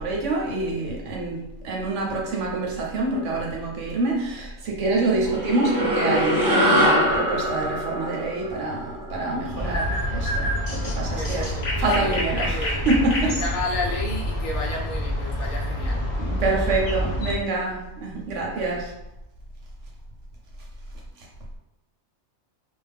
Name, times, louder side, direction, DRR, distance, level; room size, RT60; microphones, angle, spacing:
voice 1, 0.0-1.4 1.6-13.3 16.2-18.9, right 2 dB, 65° right, -1 dB, 0.9 m, -26 dB
sound 1, 5.3-9.9, equal, 20° right, 0.8 m, -23 dB
sound 2, 9.6-17.3, left 1 dB, 55° left, 0.5 m, -27 dB
voice 2, 11.1-12.9 13.3-16.0, left 2 dB, 75° left, -2 dB, 1.0 m, -32 dB
2.4 x 2.2 x 3.3 m, 0.91 s
omnidirectional pair, 1.4 m